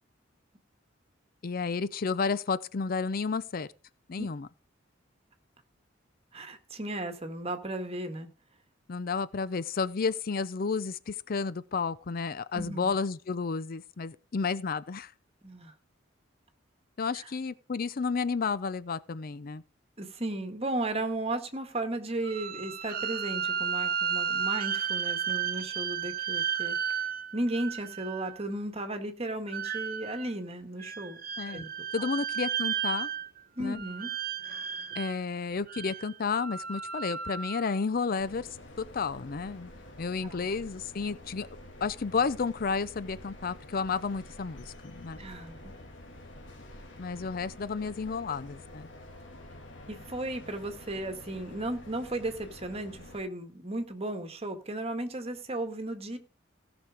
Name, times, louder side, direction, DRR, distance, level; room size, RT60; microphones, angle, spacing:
voice 1, 1.4-3.7 4.1-4.5 8.9-15.1 17.0-19.6 31.4-31.6 31.9-33.1 33.6-33.8 35.0-38.5 38.8-39.7 40.0-41.5 41.8-45.2 47.0-48.9, left 5 dB, 50° left, 0.5 m, -31 dB
voice 2, 6.3-8.3 12.5-12.9 15.4-15.7 17.1-17.3 20.0-27.1 27.3-31.2 31.4-31.7 32.0-32.1 33.6-34.1 40.2-40.5 45.2-45.8 49.9-56.2, right 1 dB, 30° right, 1.7 m, -35 dB
sound 1, 22.2-28.4 29.5-30.3 30.8-33.4 33.7-35.2 35.7-37.7, right 8 dB, 50° right, 1.0 m, -33 dB
sound 2, 38.2-53.2, left 1 dB, 70° left, 2.7 m, -48 dB
16.5 x 6.1 x 5.0 m
head